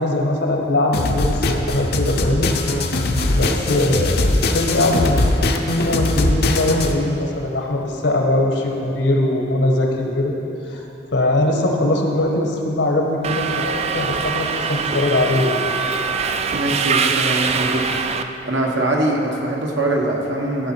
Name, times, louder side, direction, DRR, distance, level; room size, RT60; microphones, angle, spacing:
voice 1, 0.0-2.5 3.3-5.3 5.7-10.3 10.7-10.8 11.1-15.6, left 1 dB, 80° left, 1 dB, 1.3 m, -21 dB
sound 1, 0.9-6.9, left 2 dB, 60° left, 0.7 m, -20 dB
Subway metro underground, 13.2-18.2, right 5 dB, 35° right, 0.3 m, -23 dB
voice 2, 16.5-17.9 18.4-20.7, right 1 dB, 80° right, -1 dB, 1.4 m, -22 dB
14.0 x 6.0 x 4.5 m, 2.9 s
head